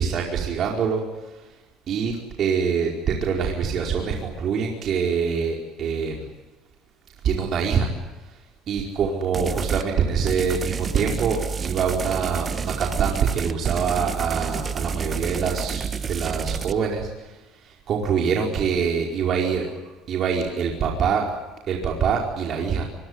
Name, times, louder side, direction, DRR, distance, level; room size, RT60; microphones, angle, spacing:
voice 1, 0.0-1.3 1.9-6.3 7.2-7.9 8.7-19.7 20.1-21.3 21.7-22.8, right 6 dB, 50° right, 0 dB, 4.7 m, -25 dB
sound 1, 9.3-9.9 10.3-16.7, right 6 dB, 30° right, 1.5 m, -30 dB
25.0 x 23.0 x 9.8 m, 1.1 s
supercardioid pair, 105°, 0 cm